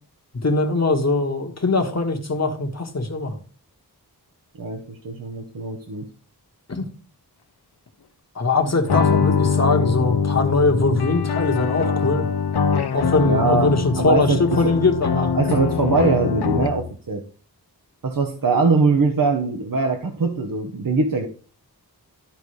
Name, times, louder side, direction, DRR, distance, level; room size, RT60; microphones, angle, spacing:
voice 1, 0.4-3.4 6.7-6.8 8.3-12.3 12.9-15.3, left 3 dB, 40° left, 4 dB, 1.4 m, -21 dB
voice 2, 4.6-6.1 13.2-14.8 15.2-17.2 18.0-21.3, right 4 dB, 55° right, 3 dB, 1.0 m, -22 dB
sound 1, 8.9-16.9, left 6 dB, 80° left, 0.7 m, -23 dB
13.0 x 5.2 x 3.2 m, 0.40 s
wide cardioid pair, 95°, 39 cm